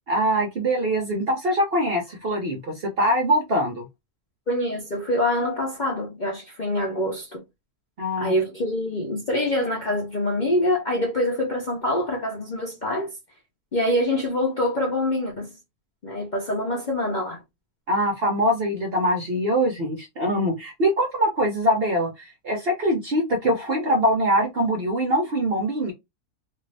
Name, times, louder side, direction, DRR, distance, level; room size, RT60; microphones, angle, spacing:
voice 1, 0.1-3.9 8.0-8.3 17.9-25.9, equal, 55° right, 0.7 m, -23 dB
voice 2, 4.5-7.4 8.2-13.1 13.7-15.5 16.0-17.4, left 1 dB, 45° left, 0.6 m, -25 dB
2.5 x 2.5 x 3.2 m
omnidirectional pair, 1.6 m